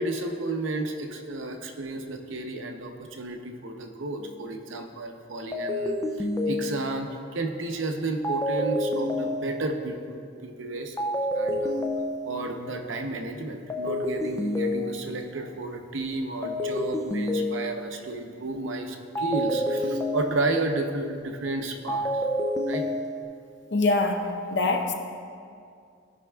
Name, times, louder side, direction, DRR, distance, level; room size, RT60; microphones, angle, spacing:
voice 1, 0.0-11.0 11.3-11.8 12.3-22.2 22.6-22.8, right 2 dB, 80° right, 4 dB, 0.7 m, -32 dB
sound 1, 4.2-4.5 5.5-7.2 8.2-9.9 11.0-12.7 13.7-15.4 16.4-18.1 19.1-20.8 21.9-23.2, left 1 dB, 15° left, 0.4 m, -29 dB
voice 2, 23.7-24.9, left 2 dB, 60° left, 4 dB, 0.7 m, -24 dB
15.5 x 5.3 x 2.3 m, 2.3 s
head